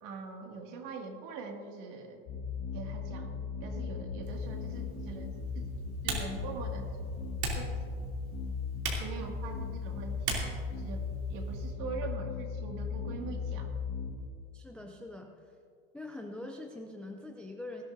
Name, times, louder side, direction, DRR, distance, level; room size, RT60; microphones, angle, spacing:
voice 1, 0.0-2.2 2.7-5.3 5.5-5.7 6.0-6.9 7.6-7.8 9.0-11.0 11.3-13.7, right 4 dB, 50° right, 2 dB, 2.2 m, -43 dB
sound 1, 2.3-14.1, left 4 dB, 50° left, 1.8 m, -37 dB
Typing, 4.2-11.7, right 4 dB, 80° right, 3.1 m, -41 dB
voice 2, 14.5-15.6 15.9-17.8, left 2 dB, 5° left, 3 dB, 0.3 m, -43 dB
19.0 x 12.5 x 2.7 m, 2.3 s
supercardioid pair, 125°, 42 cm